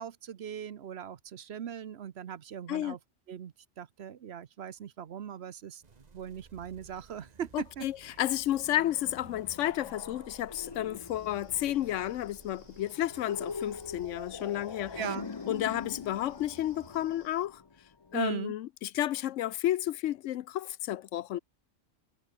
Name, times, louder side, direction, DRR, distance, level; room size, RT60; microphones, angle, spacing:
voice 1, 0.0-3.0 3.3-5.8 6.1-7.9 15.0-15.3 18.1-18.5, right 8 dB, 60° right, 1.0 m, -39 dB
sound 1, 5.8-17.8, right 4 dB, 35° right, 1.3 m, -56 dB
voice 2, 7.5-15.0 15.5-17.6 18.1-21.4, left 13 dB, 85° left, 0.9 m, -32 dB
sound 2, 8.4-18.2, left 4 dB, 30° left, 0.5 m, -44 dB
sound 3, 11.0-17.5, left 4 dB, 60° left, 2.4 m, -65 dB
omnidirectional pair, 1.3 m